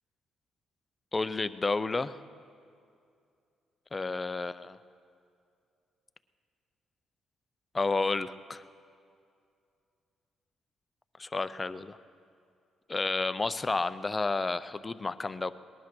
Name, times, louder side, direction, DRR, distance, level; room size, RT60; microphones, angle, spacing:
voice 1, 1.1-2.2 3.9-4.8 7.7-8.6 11.2-12.0 12.9-15.5, left 3 dB, 25° left, 14 dB, 0.5 m, -31 dB
19.5 x 11.5 x 6.1 m, 2.4 s
cardioid pair, 90°, 0 cm